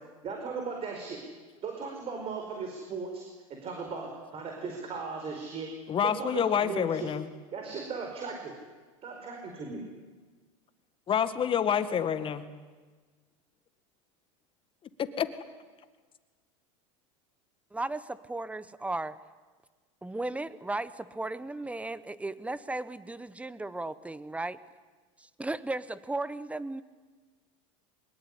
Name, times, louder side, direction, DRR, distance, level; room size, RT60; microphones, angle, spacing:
voice 1, 0.2-1.2 1.6-3.2 3.6-5.7 6.0-7.1 7.5-8.6 9.0-9.8, right 4 dB, 35° right, 2 dB, 4.9 m, -37 dB
voice 2, 5.9-7.3 11.1-12.5 15.0-15.3, left 8 dB, 30° left, 11 dB, 2.0 m, -27 dB
voice 3, 17.7-19.2 20.0-24.6 25.2-26.8, right 2 dB, 10° right, 16 dB, 1.1 m, -35 dB
23.0 x 20.5 x 9.9 m, 1.4 s
supercardioid pair, 110°, 17 cm